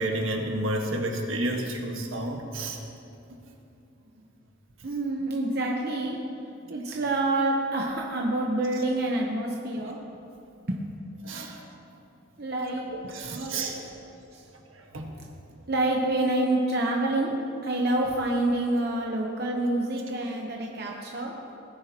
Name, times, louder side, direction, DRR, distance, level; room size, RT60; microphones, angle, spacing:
voice 1, 0.0-2.8 11.2-11.6 12.9-13.8 14.9-15.2, right 1 dB, 75° right, 1 dB, 1.5 m, -30 dB
voice 2, 4.8-6.4 6.7-10.0 10.7-10.8 12.4-14.0 14.3-14.5 15.7-17.4 17.6-21.3, right 2 dB, 50° right, -1 dB, 0.9 m, -27 dB
18.5 x 10.0 x 2.9 m, 2.8 s
head